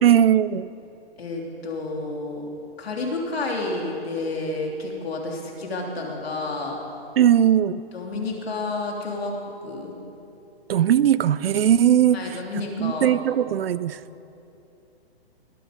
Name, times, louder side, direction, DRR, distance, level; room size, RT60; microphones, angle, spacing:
voice 1, 0.0-0.7 7.2-7.8 10.7-12.3 12.8-14.0, right 10 dB, 65° right, 0.5 m, -19 dB
voice 2, 1.2-2.5 2.8-6.8 7.9-9.4 9.6-10.0 12.1-13.1, left 2 dB, 70° left, 3.1 m, -30 dB
21.0 x 9.1 x 5.1 m
hypercardioid pair, 135°, 31 cm